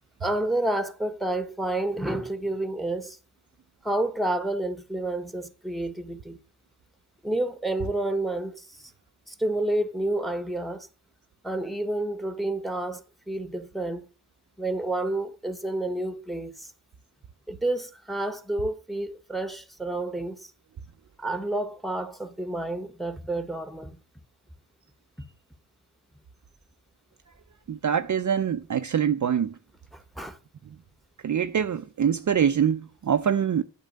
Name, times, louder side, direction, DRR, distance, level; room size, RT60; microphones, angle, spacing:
voice 1, 0.2-3.2 3.8-6.4 7.2-8.9 9.3-10.9 11.4-14.1 14.6-16.7 17.5-20.5 21.2-24.0 29.9-30.4, right 2 dB, ahead, 1.2 m, -29 dB
voice 2, 27.7-29.6 31.2-33.6, right 8 dB, 45° right, 0.6 m, -24 dB
9.1 x 6.2 x 6.5 m
cardioid pair, 75°, 43 cm